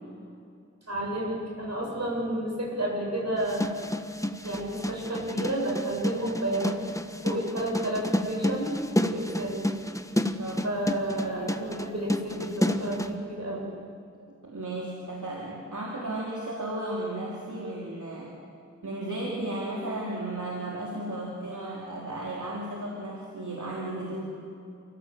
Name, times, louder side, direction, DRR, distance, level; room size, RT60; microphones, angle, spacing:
voice 1, 0.9-3.6 4.4-6.8 7.2-8.7 9.0-9.6 10.6-13.7, right 1 dB, 60° right, -2 dB, 7.8 m, -31 dB
sound 1, 3.4-13.1, left 1 dB, 10° left, 1.2 m, -30 dB
voice 2, 10.4-10.8 11.0-11.8 14.4-18.3 18.8-24.2, right 1 dB, 80° right, -4 dB, 3.5 m, -34 dB
29.5 x 16.5 x 7.7 m, 2.6 s
wide cardioid pair, 55°, 30 cm